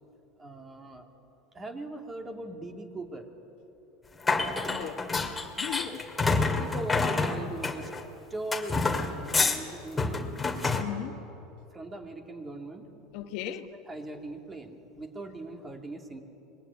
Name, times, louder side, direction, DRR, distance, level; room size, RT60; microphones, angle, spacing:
voice 1, 0.4-1.1 1.5-3.3 5.8-7.9 8.3-10.3 11.7-12.9 13.5-13.6 13.9-16.2, right 2 dB, 20° right, 2.8 m, -40 dB
sound 1, 4.2-8.0 8.5-9.6 10.0-10.8, left 3 dB, 15° left, 2.3 m, -28 dB
voice 2, 4.7-5.3 5.6-6.0 10.7-11.2 13.1-13.6, left 12 dB, 65° left, 1.3 m, -37 dB
25.0 x 21.5 x 9.8 m
supercardioid pair, 125°, 0 cm